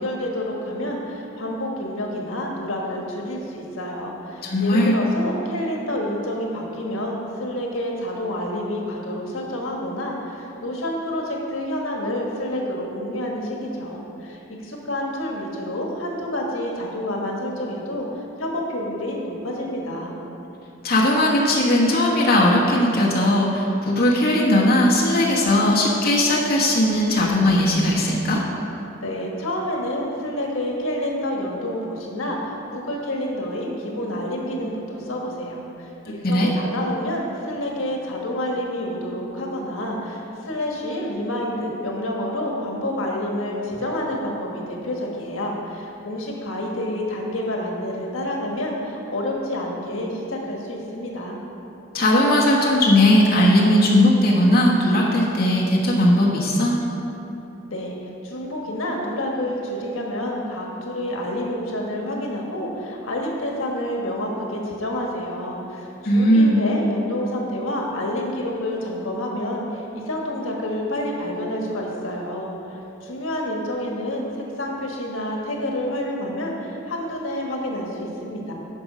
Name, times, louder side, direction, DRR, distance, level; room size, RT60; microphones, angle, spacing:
voice 1, 0.0-18.1 18.4-20.1 29.0-51.4 57.7-58.0 58.2-78.5, left 1 dB, 85° left, -1 dB, 1.4 m, -28 dB
voice 2, 4.4-5.0 20.8-28.4 36.1-36.5 51.9-56.8 66.0-66.6, left 1 dB, 50° left, -4 dB, 1.2 m, -18 dB
9.6 x 5.3 x 6.1 m, 2.9 s
head